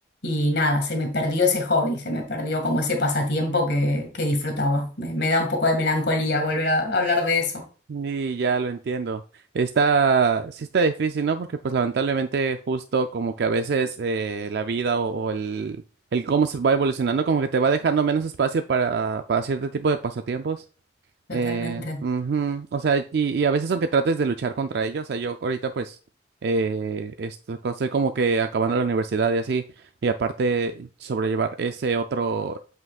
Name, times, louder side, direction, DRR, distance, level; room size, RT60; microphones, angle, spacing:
voice 1, 0.2-7.6 21.3-22.0, left 2 dB, 70° left, 2.0 m, -24 dB
voice 2, 7.9-9.2 9.5-15.8 16.1-20.6 21.3-26.0 26.4-29.6 30.0-32.6, right 5 dB, 60° right, 0.4 m, -24 dB
8.0 x 5.7 x 2.4 m
head